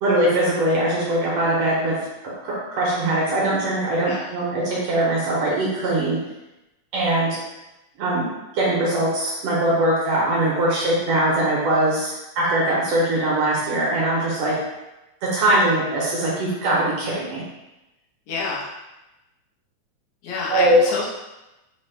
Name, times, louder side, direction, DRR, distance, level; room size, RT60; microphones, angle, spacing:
voice 1, 0.0-2.0 2.2-6.2 6.9-7.4 8.0-8.3 8.5-14.5 15.3-17.4 20.5-20.8, right 1 dB, 70° right, -5 dB, 1.6 m, -21 dB
voice 2, 18.3-18.7 20.2-21.1, left 4 dB, 90° left, -4 dB, 2.0 m, -27 dB
5.0 x 2.0 x 3.2 m, 0.99 s
omnidirectional pair, 3.3 m